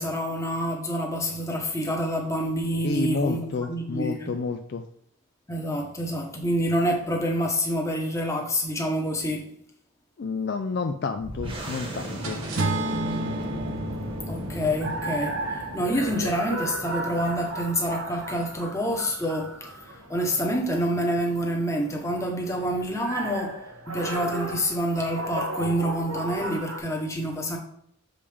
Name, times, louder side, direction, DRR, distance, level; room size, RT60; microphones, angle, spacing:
voice 1, 0.0-4.3 5.5-9.5 14.3-19.7 20.1-23.6 23.9-27.6, equal, 15° left, 1 dB, 1.0 m, -27 dB
voice 2, 2.8-4.8 10.2-12.4, left 4 dB, 50° left, 6 dB, 0.4 m, -30 dB
sound 1, 11.2-20.4, right 1 dB, 25° right, 1.2 m, -38 dB
sound 2, 12.2-26.8, right 1 dB, 85° right, 1.2 m, -36 dB
Acoustic guitar / Strum, 12.6-16.8, right 1 dB, 60° right, 0.7 m, -32 dB
6.9 x 5.1 x 3.5 m, 0.70 s
head